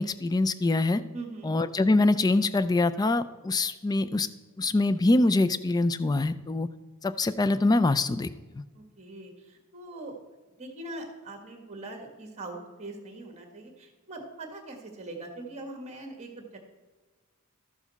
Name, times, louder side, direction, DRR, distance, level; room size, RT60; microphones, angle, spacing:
voice 1, 0.0-1.0 1.5-4.3 4.6-6.7 7.0-8.3, left 2 dB, 15° left, 14 dB, 0.3 m, -24 dB
voice 2, 1.1-1.6 8.7-10.1 10.6-16.6, right 2 dB, 30° right, 3 dB, 1.5 m, -42 dB
12.5 x 7.2 x 4.1 m, 1.3 s
head